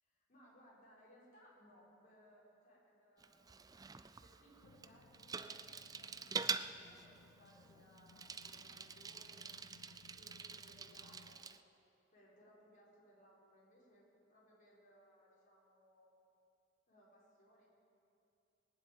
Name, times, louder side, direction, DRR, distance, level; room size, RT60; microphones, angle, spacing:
voice 1, 0.0-9.7 10.0-11.6 12.1-16.2 16.9-17.7, equal, 40° left, -6 dB, 5.3 m, -66 dB
Bicycle, 3.2-11.6, right 5 dB, 20° right, 0.4 m, -46 dB
sound 1, 4.6-11.4, left 4 dB, 80° left, 0.5 m, -65 dB
20.5 x 7.9 x 8.9 m, 2.7 s
head